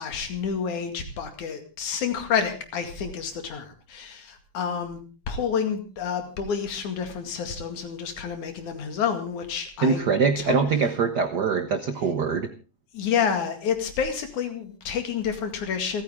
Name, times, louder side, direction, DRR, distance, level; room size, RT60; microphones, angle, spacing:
voice 1, 0.0-5.0 5.3-10.0 10.4-10.6 12.9-16.0, left 7 dB, 80° left, 6 dB, 3.6 m, -29 dB
voice 2, 9.8-12.5, right 5 dB, 75° right, 10 dB, 0.9 m, -23 dB
28.0 x 9.6 x 3.6 m, 0.33 s
omnidirectional pair, 3.4 m